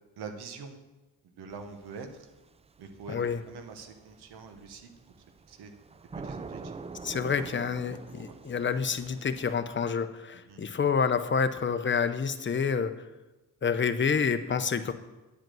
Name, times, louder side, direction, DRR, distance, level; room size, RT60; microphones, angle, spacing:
voice 1, 0.2-0.8 1.2-2.3 2.8-3.2 3.5-4.9 5.5-5.7 6.2-6.8 8.1-8.4 10.5-10.6, right 5 dB, 80° right, 7 dB, 1.2 m, -44 dB
sound 1, 1.5-9.6, right 4 dB, 15° right, 0.3 m, -46 dB
voice 2, 3.1-3.4 6.6-6.7 7.0-13.1 13.6-14.9, left 6 dB, 30° left, 10 dB, 0.7 m, -28 dB
9.4 x 5.1 x 7.6 m, 1.1 s
cardioid pair, 80°, 38 cm